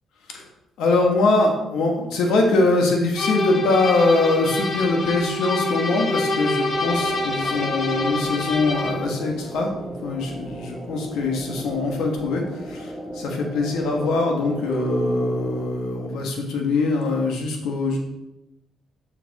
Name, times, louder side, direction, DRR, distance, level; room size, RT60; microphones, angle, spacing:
voice 1, 0.8-9.7 10.0-18.0, left 3 dB, 85° left, 1 dB, 1.4 m, -22 dB
sound 1, 3.2-9.1, left 2 dB, 50° left, 1.9 m, -26 dB
sound 2, 6.7-15.7, right 1 dB, 5° right, 2.3 m, -36 dB
6.9 x 5.9 x 4.1 m, 0.89 s
cardioid pair, 90°, 0 cm